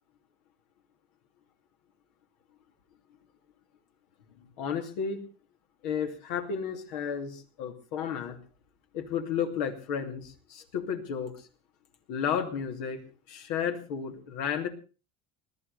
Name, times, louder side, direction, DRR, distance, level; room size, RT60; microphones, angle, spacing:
voice 1, 4.4-5.2 5.8-8.4 8.9-11.5 12.1-14.7, left 7 dB, 85° left, 4 dB, 2.8 m, -33 dB
20.5 x 13.0 x 4.2 m, 0.34 s
supercardioid pair, 100°, 20 cm